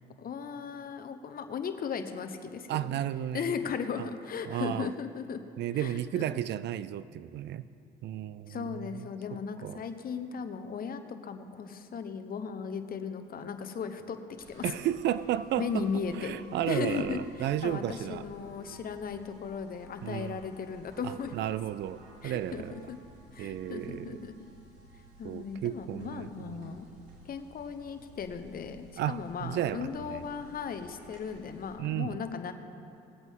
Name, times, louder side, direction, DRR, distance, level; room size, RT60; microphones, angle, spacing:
voice 1, 0.2-3.0 3.3-5.4 5.7-6.2 8.5-14.2 14.5-14.9 15.6-16.4 16.7-21.4 22.2-23.0 23.3-24.4 25.2-26.9 27.2-32.5, left 6 dB, 50° left, 8 dB, 1.0 m, -37 dB
voice 2, 2.7-3.5 4.5-4.9 5.6-7.7 8.0-8.7 9.6-9.8 14.6-15.9 16.1-18.2 20.0-20.4 21.0-22.9 23.4-24.2 25.2-26.8 29.0-30.2 31.8-32.2, right 12 dB, 60° right, 16 dB, 0.4 m, -33 dB
sound 1, 14.4-31.7, right 1 dB, 80° right, 3.1 m, -55 dB
19.5 x 8.1 x 3.7 m, 2.9 s
supercardioid pair, 70°, 20 cm